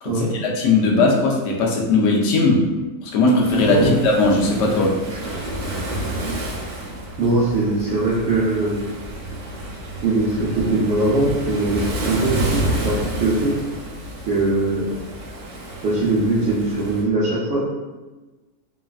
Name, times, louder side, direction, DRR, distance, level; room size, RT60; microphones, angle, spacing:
voice 1, 0.0-2.6 3.1-4.9, left 3 dB, 75° left, -1 dB, 0.6 m, -18 dB
Waves surf, 3.4-17.0, right 1 dB, 90° right, 1.3 m, -30 dB
voice 2, 7.2-8.7 10.0-13.5 14.3-14.9 15.8-17.6, right 2 dB, 65° right, -8 dB, 0.6 m, -21 dB
3.1 x 2.3 x 2.3 m, 1.2 s
omnidirectional pair, 1.8 m